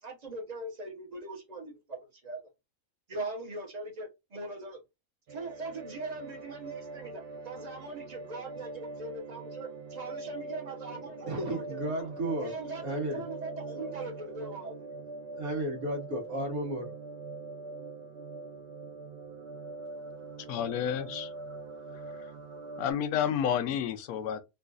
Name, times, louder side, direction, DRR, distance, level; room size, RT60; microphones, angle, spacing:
voice 1, 0.0-2.4 3.1-4.8 5.3-12.1 12.4-12.8 13.1-14.7, right 2 dB, 35° right, 0.8 m, -41 dB
sound 1, 5.3-22.9, right 3 dB, 70° right, 0.5 m, -43 dB
voice 2, 10.9-13.3 13.8-13.9 14.5-14.6 15.4-16.9, right 1 dB, 85° right, 1.6 m, -34 dB
voice 3, 20.5-21.3 22.2-22.3 22.8-24.4, left 9 dB, 85° left, 1.0 m, -30 dB
3.8 x 2.4 x 2.4 m
omnidirectional pair, 1.5 m